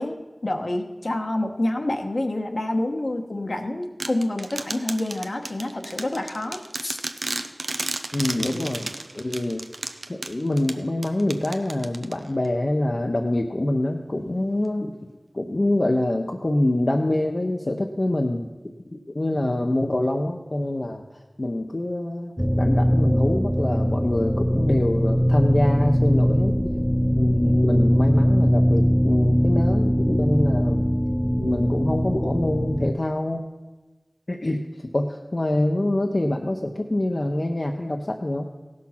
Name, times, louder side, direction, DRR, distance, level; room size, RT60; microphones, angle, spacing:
voice 1, 0.0-7.0, left 1 dB, 70° left, 4 dB, 1.1 m, -28 dB
sound 1, 4.0-12.5, right 2 dB, 90° right, 0.6 m, -33 dB
voice 2, 8.1-8.9 9.1-9.6 10.1-14.9 15.3-18.5 18.9-21.0 21.4-22.3 22.6-26.7 27.1-30.8 31.4-33.5 34.3-38.4, left 1 dB, 55° left, 2 dB, 0.7 m, -25 dB
sound 2, 22.4-32.9, equal, ahead, 0.4 m, -21 dB
16.5 x 6.3 x 5.8 m, 1.2 s
wide cardioid pair, 50°, 0 cm